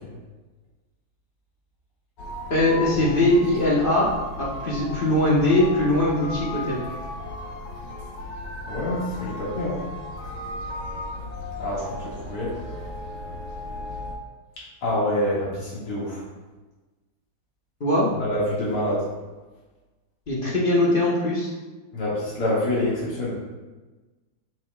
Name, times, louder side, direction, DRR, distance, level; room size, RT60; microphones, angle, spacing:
sound 1, 2.2-14.1, left 2 dB, 60° left, 1.5 m, -35 dB
voice 1, 2.5-4.1 4.4-6.8 17.8-18.1 20.3-21.5, left 1 dB, 40° left, -5 dB, 0.7 m, -21 dB
voice 2, 8.7-9.8 11.6-12.5 14.8-16.2 18.2-19.0 21.9-23.3, left 1 dB, 90° left, -7 dB, 2.9 m, -26 dB
7.4 x 5.9 x 2.3 m, 1.2 s
omnidirectional pair, 2.4 m